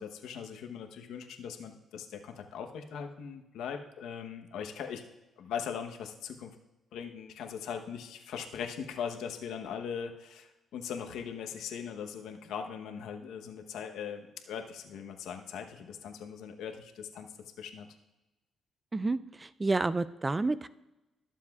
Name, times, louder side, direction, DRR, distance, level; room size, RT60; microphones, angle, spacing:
voice 1, 0.0-5.0 5.4-6.5 6.9-17.3 17.6-17.9, left 7 dB, 80° left, 5 dB, 0.9 m, -40 dB
voice 2, 18.9-20.7, right 3 dB, 20° right, 15 dB, 0.3 m, -30 dB
21.0 x 7.3 x 2.4 m, 1.0 s
cardioid pair, 90°, 0 cm